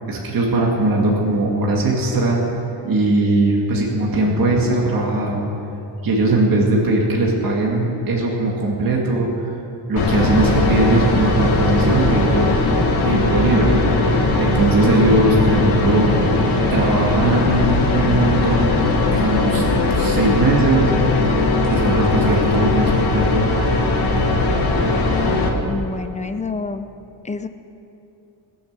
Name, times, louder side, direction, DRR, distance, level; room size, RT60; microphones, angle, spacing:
voice 1, 0.1-2.4 2.8-5.4 6.0-9.5 9.9-12.4 13.0-16.1 16.7-18.7 19.1-19.6 20.0-20.9 21.7-23.4, right 2 dB, 55° right, -2 dB, 2.2 m, -19 dB
sound 1, 10.0-25.5, left 2 dB, 55° left, 2.1 m, -19 dB
voice 2, 25.6-26.9 27.2-27.5, left 4 dB, 15° left, 10 dB, 0.5 m, -27 dB
19.5 x 8.0 x 7.4 m, 2.8 s
cardioid pair, 140°, 42 cm